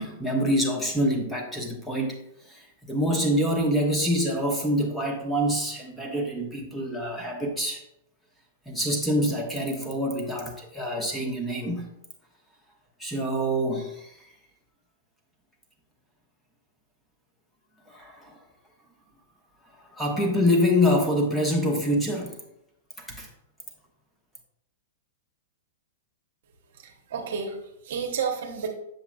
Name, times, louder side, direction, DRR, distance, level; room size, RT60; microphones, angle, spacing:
voice 1, 0.0-2.2 2.5-7.8 8.7-11.9 13.0-14.1 17.9-18.4 19.9-22.4 23.0-23.3, equal, 5° left, 0 dB, 1.1 m, -26 dB
voice 2, 26.7-28.7, right 6 dB, 55° right, 4 dB, 0.9 m, -31 dB
7.1 x 7.0 x 2.3 m, 0.81 s
figure-of-eight pair, 100°, 0 cm